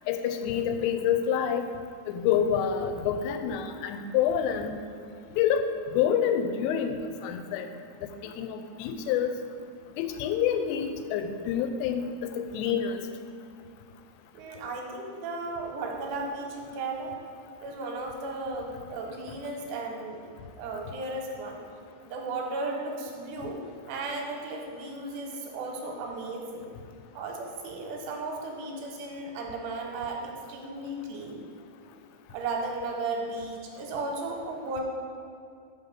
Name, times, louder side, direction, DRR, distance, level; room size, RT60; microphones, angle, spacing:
voice 1, 0.1-1.7 2.1-4.7 5.3-5.6 5.9-7.0 7.2-7.7 8.0-9.3 10.0-13.0, left 8 dB, 90° left, 7 dB, 2.8 m, -27 dB
voice 2, 14.3-17.2 17.6-20.2 20.5-21.6 22.0-26.7 27.1-31.4 32.3-34.8, right 3 dB, 85° right, 1 dB, 2.9 m, -35 dB
6.2 x 5.4 x 5.7 m, 2.5 s
omnidirectional pair, 4.9 m